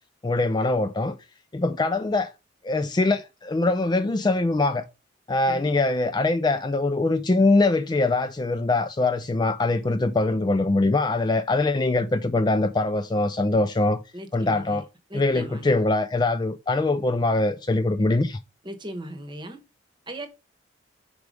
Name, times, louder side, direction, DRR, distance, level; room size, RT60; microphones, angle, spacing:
voice 1, 0.2-1.2 1.5-2.3 2.6-4.9 5.3-14.0 14.3-14.8 15.1-18.4, left 2 dB, 20° left, 0.3 m, -23 dB
voice 2, 14.1-14.8 15.1-15.7 18.6-19.6 20.1-20.3, right 1 dB, 25° right, 1.0 m, -37 dB
4.9 x 4.7 x 5.1 m
head